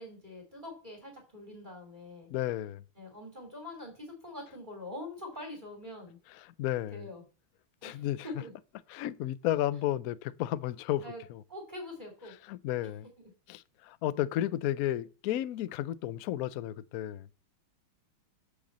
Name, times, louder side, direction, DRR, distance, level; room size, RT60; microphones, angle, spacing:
voice 1, 0.0-2.3 3.0-6.2 6.9-7.2 7.8-8.6 11.0-11.2 11.5-12.3, left 1 dB, 20° right, 3.2 m, -44 dB
voice 2, 2.3-2.8 6.3-7.1 7.8-8.3 8.9-11.4 12.5-13.1 13.5-17.3, left 13 dB, 85° left, 0.7 m, -33 dB
8.5 x 5.6 x 7.3 m
omnidirectional pair, 2.2 m